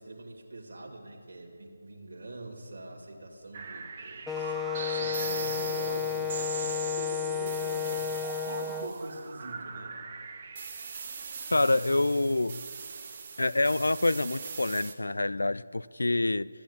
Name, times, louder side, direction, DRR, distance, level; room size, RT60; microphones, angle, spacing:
voice 1, 0.0-10.0, right 2 dB, 60° right, -2 dB, 2.1 m, -44 dB
sound 1, 3.5-14.9, right 5 dB, 35° right, 1.2 m, -40 dB
Wind instrument woodwind instrument, 4.3-8.9, left 8 dB, 5° left, 0.4 m, -32 dB
voice 2, 11.5-12.6 13.4-16.5, left 2 dB, 90° left, 18 dB, 0.3 m, -26 dB
13.5 x 8.7 x 8.4 m, 2.3 s
figure-of-eight pair, 165°, 0 cm